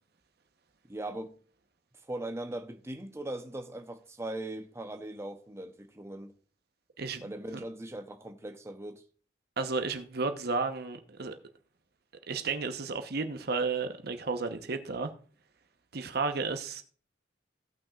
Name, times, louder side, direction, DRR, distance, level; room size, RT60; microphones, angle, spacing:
voice 1, 0.9-1.4 2.1-6.3 7.2-9.0, right 1 dB, 15° right, 0.6 m, -39 dB
voice 2, 9.6-11.4 12.3-15.1 15.9-16.8, right 4 dB, 60° right, 0.9 m, -32 dB
16.5 x 5.9 x 2.4 m
head